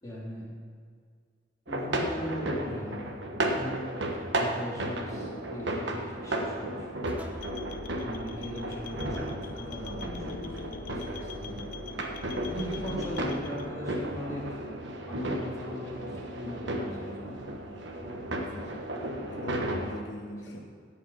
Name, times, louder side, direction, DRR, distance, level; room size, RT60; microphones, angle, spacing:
voice 1, 0.0-0.5 1.7-3.1 3.5-3.8 4.3-6.9 8.0-11.6 12.5-14.6 15.1-17.4 20.5-20.6, equal, 20° left, -6 dB, 3.2 m, -39 dB
sound 1, 1.7-20.0, right 1 dB, 70° right, 1.2 m, -34 dB
sound 2, 2.1-2.5 5.1-5.5 7.1-7.6 10.1-10.8, equal, 10° right, 0.8 m, -43 dB
sound 3, 7.4-13.7, left 4 dB, 50° left, 0.5 m, -43 dB
voice 2, 18.4-18.9 19.3-20.6, left 1 dB, 70° left, 0 dB, 1.1 m, -42 dB
16.5 x 5.8 x 5.6 m, 2.1 s
head